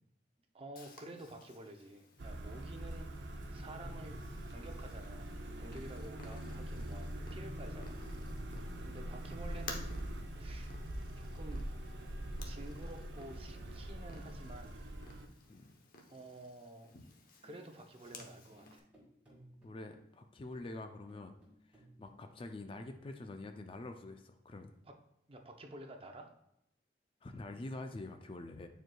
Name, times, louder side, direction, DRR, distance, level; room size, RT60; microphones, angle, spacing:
voice 1, 0.5-3.1 3.5-4.2 4.5-8.1 8.4-9.9 10.4-10.7 11.2-11.6 12.4-14.8 16.1-16.9 17.4-18.9 24.8-24.9 25.3-26.3, right 1 dB, 30° right, 4 dB, 0.6 m, -51 dB
Purr, 0.8-18.8, left 3 dB, 50° left, 0.9 m, -56 dB
sound 1, 2.2-15.3, right 1 dB, 70° right, 0.6 m, -43 dB
sound 2, 17.4-22.9, right 1 dB, 5° right, 2.0 m, -62 dB
voice 2, 19.6-21.4 21.7-24.7 27.2-28.7, left 2 dB, 30° left, 7 dB, 0.4 m, -46 dB
9.0 x 4.5 x 2.3 m, 0.80 s
head